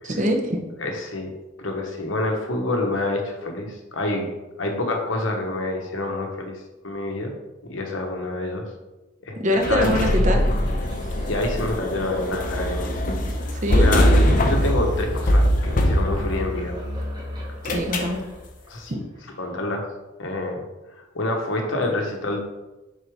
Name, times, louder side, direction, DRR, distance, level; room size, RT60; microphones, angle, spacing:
voice 1, 0.1-0.6 9.4-10.4 13.6-13.9 17.6-18.2 18.9-19.0, equal, 40° right, 3 dB, 0.8 m, -23 dB
voice 2, 0.8-1.3 1.6-4.3 4.6-7.3 7.6-8.7 9.2-9.9 11.3-12.9 13.5-16.8 18.7-19.0 19.4-19.9 20.2-20.6 21.0-22.4, left 2 dB, 80° left, 2 dB, 1.1 m, -27 dB
sound 1, 9.5-18.7, left 1 dB, 20° right, 1.2 m, -34 dB
sound 2, 9.6-16.7 17.6-18.2, equal, 45° left, 0.7 m, -22 dB
6.5 x 4.1 x 3.5 m, 1.1 s
head